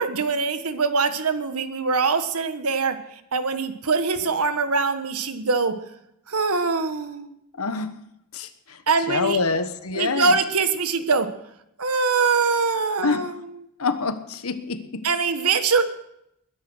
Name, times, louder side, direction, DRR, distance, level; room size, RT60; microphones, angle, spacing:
voice 1, 0.0-3.0 3.3-5.7 6.3-7.3 8.9-9.4 9.9-11.3 11.8-13.5 15.0-15.8, right 4 dB, 90° right, 10 dB, 1.5 m, -23 dB
voice 2, 7.6-7.9 8.3-8.8 9.1-10.4 13.0-13.3 13.8-15.1, left 4 dB, 75° left, 11 dB, 1.2 m, -26 dB
21.0 x 10.5 x 6.2 m, 0.78 s
head